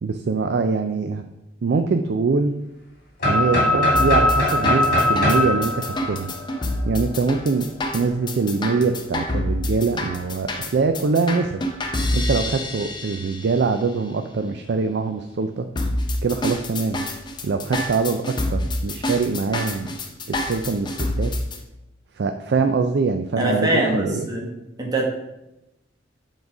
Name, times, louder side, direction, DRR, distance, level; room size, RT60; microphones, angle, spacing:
voice 1, 0.0-1.3 1.6-2.5 3.2-6.3 6.9-11.7 12.1-15.7 16.2-17.0 17.4-19.9 20.3-21.3 22.2-24.3, right 4 dB, 65° right, 7 dB, 0.4 m, -23 dB
sound 1, 3.2-7.0, left 1 dB, 50° left, 2.3 m, -20 dB
sound 2, 3.9-13.6 15.8-21.6, left 1 dB, 25° left, 0.7 m, -27 dB
voice 2, 23.4-24.5 24.8-25.0, right 1 dB, 20° right, -1 dB, 1.2 m, -22 dB
7.1 x 4.0 x 4.8 m, 0.93 s
head